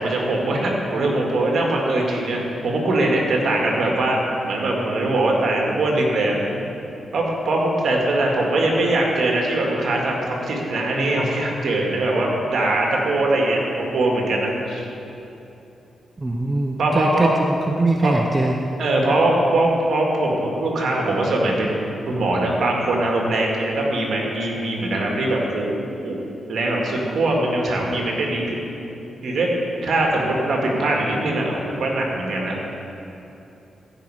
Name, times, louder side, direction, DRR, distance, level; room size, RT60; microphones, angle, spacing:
voice 1, 0.0-4.2 4.5-6.4 7.1-14.9 16.8-17.3 18.0-18.1 18.8-21.7 22.1-26.2 26.5-28.6 29.2-29.5 29.8-32.6, right 2 dB, 65° right, -1 dB, 2.0 m, -21 dB
voice 2, 16.2-17.3 17.7-18.6, right 2 dB, 25° right, 2 dB, 0.7 m, -21 dB
15.5 x 5.4 x 4.9 m, 2.9 s
cardioid pair, 65°, 0 cm